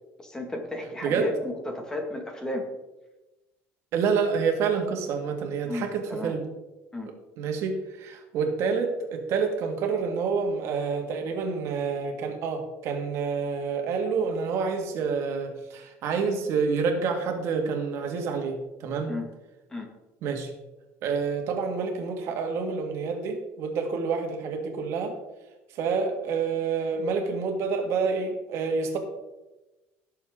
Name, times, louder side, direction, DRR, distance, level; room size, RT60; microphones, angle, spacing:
voice 1, 0.2-2.7 5.7-6.4 6.9-7.1 19.1-19.3 19.7-19.9, left 1 dB, 10° left, 2 dB, 1.8 m, -33 dB
voice 2, 3.9-6.4 7.4-19.2 20.2-20.5 21.0-25.2 25.7-29.0, right 5 dB, 60° right, 3 dB, 1.9 m, -28 dB
17.0 x 6.9 x 3.7 m, 1.0 s
cardioid pair, 140°, 5 cm